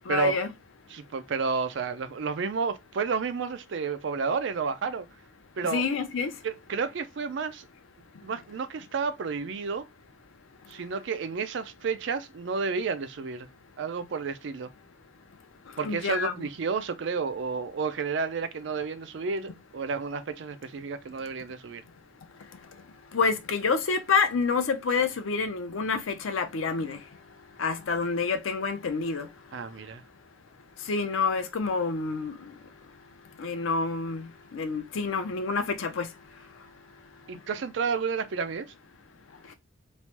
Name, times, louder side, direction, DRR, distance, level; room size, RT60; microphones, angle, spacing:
voice 1, 0.1-0.5 5.7-6.3 15.8-16.5 23.1-27.0 27.6-29.3 30.9-32.3 33.4-36.1, left 4 dB, 90° left, 0.5 m, -28 dB
voice 2, 0.9-5.1 5.6-5.8 6.4-7.7 8.2-9.9 10.7-13.5 13.8-14.7 15.8-21.8 29.5-30.0 37.3-38.7, right 5 dB, 65° right, 0.4 m, -31 dB
3.1 x 2.1 x 2.9 m
head